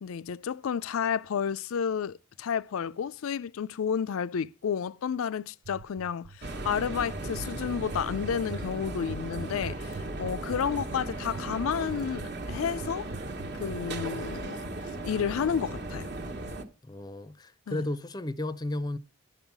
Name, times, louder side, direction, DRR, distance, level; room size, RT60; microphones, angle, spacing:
voice 1, 0.0-13.1 13.6-14.6 15.0-16.1 17.7-17.8, left 7 dB, 80° left, 0.4 m, -31 dB
sound 1, 5.6-14.1, right 5 dB, 75° right, 0.5 m, -42 dB
sound 2, 6.4-16.6, right 2 dB, 50° right, 1.2 m, -37 dB
voice 2, 16.8-19.0, left 1 dB, 20° left, 0.5 m, -33 dB
11.5 x 5.5 x 5.9 m
head